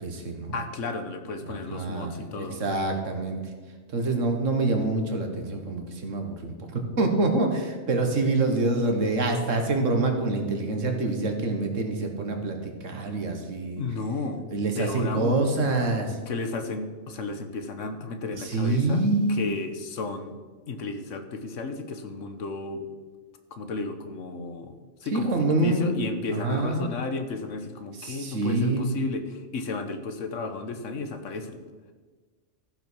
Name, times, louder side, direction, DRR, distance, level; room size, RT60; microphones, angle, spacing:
voice 1, 0.0-0.6 1.4-3.4 3.9-13.8 14.5-16.2 18.3-19.4 25.1-25.9 26.3-26.9 27.9-28.9, right 2 dB, 90° right, 4 dB, 1.9 m, -26 dB
voice 2, 0.5-2.6 13.8-14.4 14.8-15.5 16.3-20.4 20.7-22.9 23.5-25.3 25.6-31.6, left 3 dB, 85° left, 7 dB, 1.4 m, -33 dB
14.5 x 5.9 x 6.2 m, 1.4 s
omnidirectional pair, 1.3 m